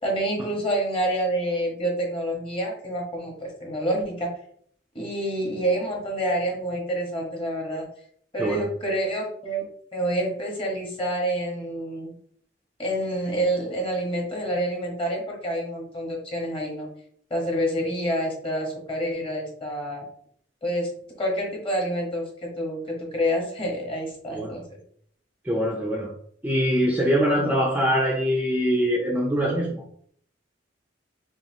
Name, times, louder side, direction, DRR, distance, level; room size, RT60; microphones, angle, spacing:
voice 1, 0.0-4.3 4.9-7.9 8.3-9.6 9.9-12.1 12.8-16.9 17.3-20.1 20.6-24.8, right 1 dB, 30° left, 0 dB, 1.3 m, -28 dB
voice 2, 25.4-26.1 26.4-29.8, equal, 10° right, -1 dB, 0.5 m, -23 dB
5.4 x 2.4 x 2.8 m, 0.63 s
head